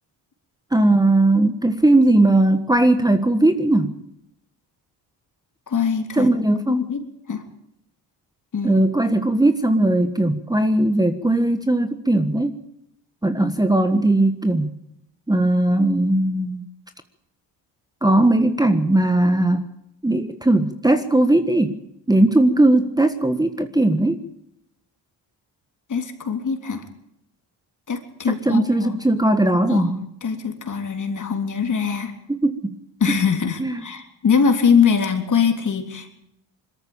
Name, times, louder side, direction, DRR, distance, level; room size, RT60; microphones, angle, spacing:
voice 1, 0.7-3.9 6.2-6.9 8.6-12.6 13.2-14.7 15.3-16.7 18.0-19.6 20.0-21.8 22.1-24.2 28.4-30.0 32.3-32.7 33.6-33.7, right 1 dB, 10° right, 9 dB, 1.5 m, -18 dB
voice 2, 5.7-6.3 6.7-7.4 8.5-8.8 25.9-26.8 27.9-29.0 29.7-32.1 33.0-36.2, left 6 dB, 45° left, 6 dB, 3.6 m, -22 dB
21.5 x 14.0 x 8.9 m, 0.77 s
supercardioid pair, 75°, 44 cm